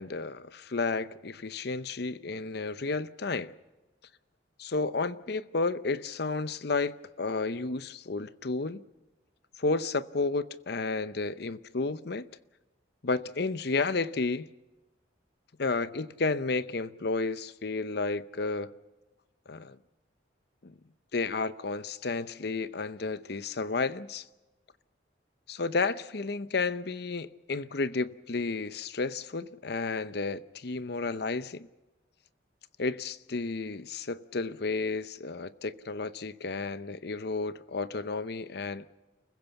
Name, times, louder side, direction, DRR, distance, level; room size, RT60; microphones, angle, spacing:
voice 1, 0.0-3.5 4.6-8.8 9.6-12.3 13.0-14.5 15.6-18.7 19.5-19.8 20.6-20.7 21.1-24.2 25.5-31.7 32.8-38.9, left 3 dB, 60° left, 0.7 m, -32 dB
29.5 x 15.5 x 7.1 m
head